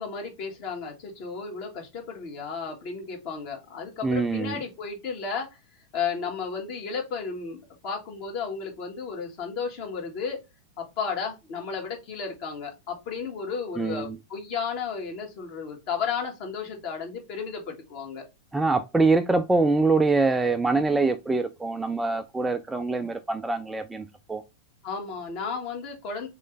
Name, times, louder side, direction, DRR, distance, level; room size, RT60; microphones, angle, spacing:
voice 1, 0.0-5.5 5.9-10.4 10.8-18.3 23.0-23.1 24.8-26.3, left 5 dB, 45° left, 1.5 m, -33 dB
voice 2, 4.0-4.6 13.8-14.2 18.5-24.4, right 3 dB, 10° right, 0.3 m, -24 dB
3.7 x 3.1 x 3.2 m
figure-of-eight pair, 90°, 0 cm